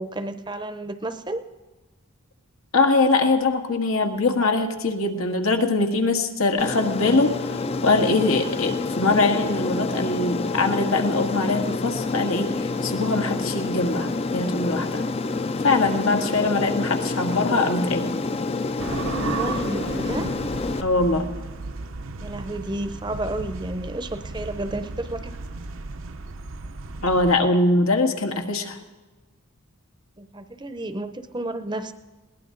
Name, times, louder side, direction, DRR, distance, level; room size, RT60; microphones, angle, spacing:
voice 1, 0.0-1.5 19.1-20.3 22.2-25.4 30.2-31.9, right 1 dB, 20° right, 10 dB, 0.7 m, -31 dB
voice 2, 2.7-15.0 15.6-18.1 20.8-21.3 27.0-28.8, left 3 dB, 85° left, 3 dB, 1.7 m, -22 dB
Aircraft, 6.6-20.8, left 3 dB, 30° left, 0.4 m, -28 dB
sound 1, 18.8-27.4, right 3 dB, 75° right, 0.8 m, -34 dB
21.0 x 18.0 x 3.9 m, 1.2 s
head